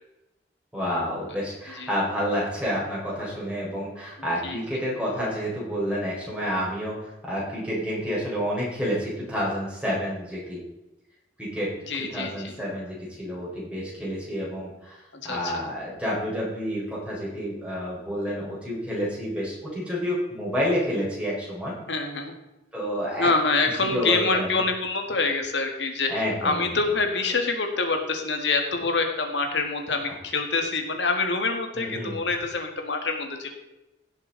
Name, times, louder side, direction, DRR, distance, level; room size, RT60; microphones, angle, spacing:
voice 1, 0.7-10.6 11.4-21.7 22.7-23.3 23.9-24.6 26.1-26.7 31.8-32.1, equal, 5° right, -6 dB, 4.9 m, -29 dB
voice 2, 11.9-12.7 15.1-15.6 21.9-22.4 23.2-26.1 26.4-33.5, left 3 dB, 80° left, 4 dB, 1.9 m, -26 dB
16.5 x 7.3 x 4.0 m, 0.98 s
head